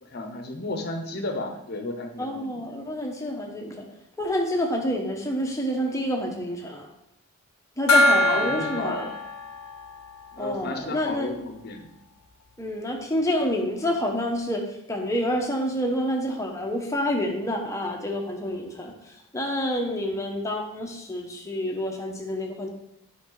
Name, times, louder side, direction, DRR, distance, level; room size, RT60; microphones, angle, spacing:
voice 1, 0.0-2.5 8.1-9.2 10.3-11.9, left 2 dB, 45° left, 5 dB, 1.0 m, -33 dB
voice 2, 2.2-3.8 4.2-6.9 7.8-9.1 10.4-11.4 12.6-14.6 14.9-18.9 19.3-22.7, equal, 15° left, 0 dB, 1.1 m, -28 dB
Gong, 7.9-11.1, left 1 dB, 75° left, 0.9 m, -24 dB
9.2 x 5.5 x 4.0 m, 0.81 s
head